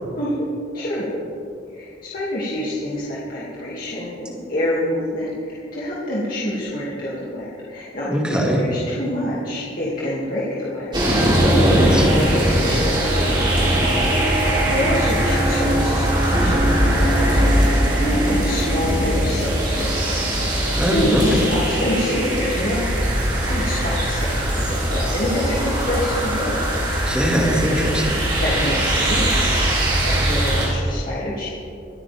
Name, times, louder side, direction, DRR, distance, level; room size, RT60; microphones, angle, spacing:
voice 1, 0.1-0.5 0.7-1.1 1.7-13.4 14.7-20.1 20.9-26.6 28.4-29.4 30.0-31.4, left 1 dB, 50° left, -8 dB, 2.5 m, -27 dB
voice 2, 8.1-8.6 11.6-12.1 20.7-21.4 27.0-28.2, equal, 5° right, -3 dB, 2.2 m, -21 dB
sound 1, 10.9-30.7, right 1 dB, 25° right, 3.3 m, -20 dB
24.0 x 9.6 x 3.5 m, 2.4 s
head